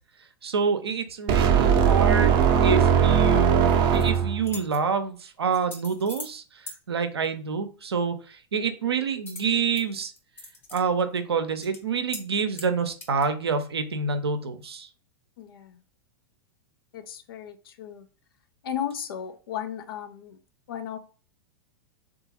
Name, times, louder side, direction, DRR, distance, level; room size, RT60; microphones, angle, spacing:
voice 1, 0.4-10.1 10.7-14.9, right 5 dB, 85° right, 0.5 m, -27 dB
sound 1, 1.3-4.5, right 7 dB, 40° right, 0.6 m, -19 dB
sound 2, 3.7-4.0 4.4-4.8 5.5-6.4 6.7-6.8 9.3-9.8 10.2-10.8 11.2-11.3 11.6-11.8 12.1-12.3 12.5-13.3, left 2 dB, 15° left, 0.8 m, -41 dB
voice 2, 15.4-15.8 16.9-18.0 18.6-20.4 20.7-21.0, left 9 dB, 65° left, 0.5 m, -35 dB
3.7 x 2.4 x 2.8 m
hypercardioid pair, 100°, 13 cm